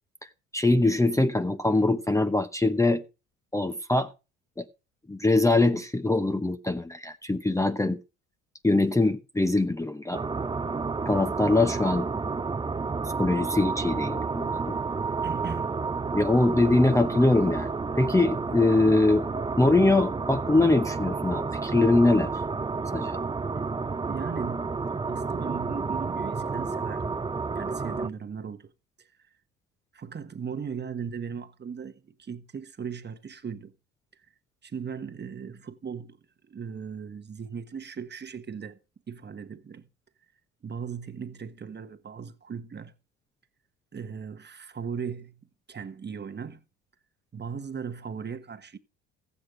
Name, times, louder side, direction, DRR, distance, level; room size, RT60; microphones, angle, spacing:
voice 1, 0.5-3.0 3.5-4.1 4.6-4.7 5.1-8.0 8.6-10.2 11.0-12.1 13.2-14.7 16.1-19.3 19.6-22.3 22.9-23.2, left 2 dB, 10° left, 0.9 m, -23 dB
sound 1, 10.1-28.1, right 4 dB, 15° right, 0.7 m, -30 dB
voice 2, 15.2-15.7 23.5-23.8 24.1-24.7 25.1-27.1 27.5-28.7 29.0-29.1 29.9-33.7 34.6-36.2 36.5-38.8 39.1-39.9 40.6-42.9 43.9-45.4 45.7-46.6 47.3-48.8, right 6 dB, 30° right, 1.3 m, -37 dB
15.0 x 8.3 x 4.9 m
hypercardioid pair, 70°, 36 cm